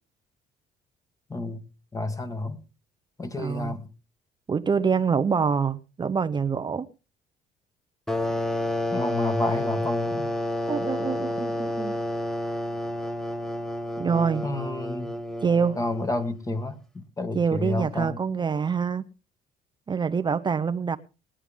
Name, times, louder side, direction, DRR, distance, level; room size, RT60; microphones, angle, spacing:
voice 1, 1.3-1.6 1.9-2.6 3.2-3.9 8.9-10.3 14.2-15.1 15.8-18.2, left 2 dB, 20° left, 1.8 m, -30 dB
voice 2, 3.4-3.8 4.5-6.9 10.7-12.0 14.0-14.5 15.4-15.8 17.3-19.1 19.9-21.0, right 6 dB, 25° right, 0.7 m, -25 dB
sound 1, 8.1-16.5, left 1 dB, 5° left, 1.1 m, -30 dB
20.0 x 9.9 x 3.6 m
cardioid pair, 110°, 17 cm